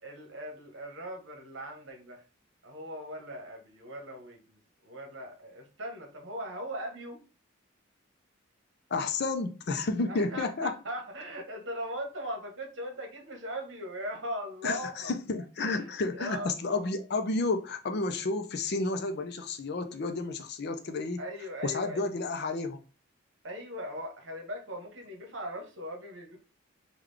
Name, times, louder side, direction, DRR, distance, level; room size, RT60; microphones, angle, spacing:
voice 1, 0.0-2.2 2.6-7.2 10.1-15.1 15.6-16.9 21.2-22.1 23.4-26.4, equal, 60° right, 1.0 m, -39 dB
voice 2, 8.9-10.7 14.6-21.2 21.6-22.8, left 3 dB, 50° left, 0.5 m, -31 dB
3.7 x 2.3 x 3.2 m
head